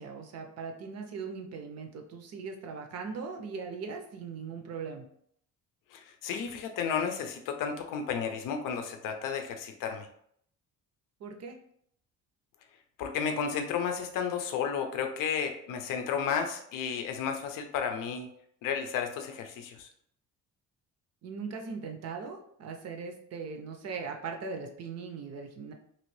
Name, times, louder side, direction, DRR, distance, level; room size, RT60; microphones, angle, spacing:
voice 1, 0.0-5.1 11.2-11.6 21.2-25.7, right 5 dB, 50° right, 4 dB, 0.5 m, -39 dB
voice 2, 5.9-10.1 13.0-18.3 18.6-19.9, left 7 dB, 70° left, 5 dB, 0.6 m, -32 dB
3.0 x 2.6 x 3.1 m, 0.68 s
cardioid pair, 135°, 33 cm